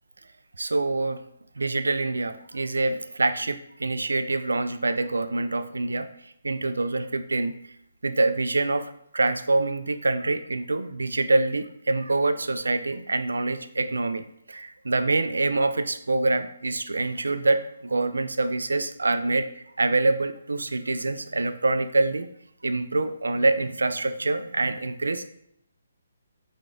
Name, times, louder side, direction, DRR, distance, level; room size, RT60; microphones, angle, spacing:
voice 1, 0.6-1.2 1.6-6.1 6.4-7.5 8.0-22.3 22.6-25.3, right 2 dB, 65° right, 10 dB, 0.3 m, -25 dB
4.6 x 2.3 x 3.7 m, 0.72 s
figure-of-eight pair, 135°, 0 cm